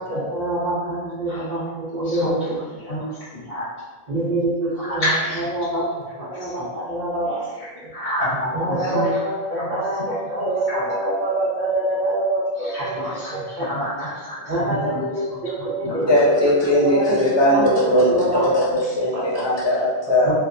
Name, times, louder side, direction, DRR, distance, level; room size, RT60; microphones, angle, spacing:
voice 1, 0.0-3.0 4.1-7.4 7.8-7.9 8.5-13.9 14.4-17.6 18.0-18.7 19.1-19.4 20.2-20.3, right 1 dB, 50° right, -6 dB, 0.7 m, -26 dB
voice 2, 3.3-3.6 4.8-5.4 7.9-9.1 9.5-9.6 10.7-10.8 12.7-15.0 15.8-15.9, left 1 dB, 60° left, -10 dB, 1.5 m, -27 dB
voice 3, 16.1-20.3, left 1 dB, 35° left, -5 dB, 0.4 m, -19 dB
2.8 x 2.0 x 2.4 m, 1.3 s
omnidirectional pair, 1.1 m